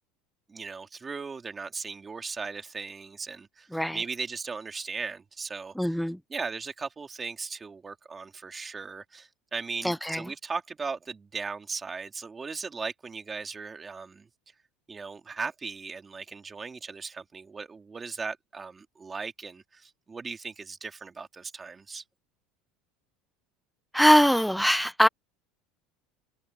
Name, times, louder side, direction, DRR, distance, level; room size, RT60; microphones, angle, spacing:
voice 1, 0.5-6.0 6.3-14.3 14.9-22.0, right 4 dB, 15° right, 2.5 m, -37 dB
voice 2, 5.8-6.2 9.8-10.2 23.9-25.1, equal, ahead, 0.5 m, -22 dB
cardioid pair, 150°, 0 cm